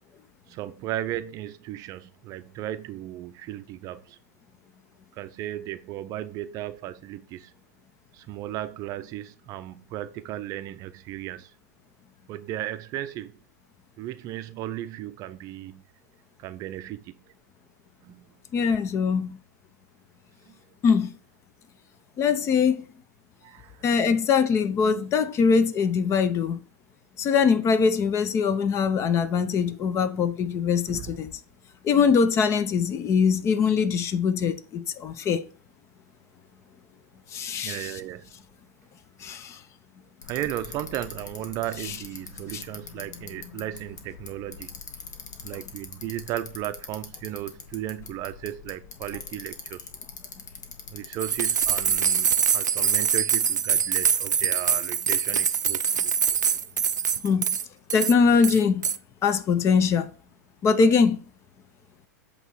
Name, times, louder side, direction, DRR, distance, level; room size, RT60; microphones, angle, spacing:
voice 1, 0.5-4.2 5.2-7.5 8.1-11.5 12.3-13.3 14.0-15.8 16.4-17.1 18.0-18.3 20.5-20.6 23.4-23.8 30.9-31.2 37.6-38.3 40.3-44.8 45.4-49.9 50.9-56.1, right 13 dB, 40° right, 0.5 m, -35 dB
voice 2, 18.5-19.4 20.8-21.1 22.2-22.8 23.8-26.6 27.2-31.3 31.8-35.4 37.3-37.9 39.2-39.6 41.9-42.0 42.5-42.6 57.2-57.5 57.9-58.8 59.2-60.1 60.6-61.2, left 6 dB, 30° left, 0.7 m, -22 dB
Bicycle, 40.2-51.9, left 5 dB, 80° left, 1.1 m, -43 dB
sound 1, 51.2-57.6 57.9-58.1 58.4-59.0, right 7 dB, 85° right, 0.4 m, -24 dB
8.0 x 3.1 x 4.6 m
hypercardioid pair, 105°, 9 cm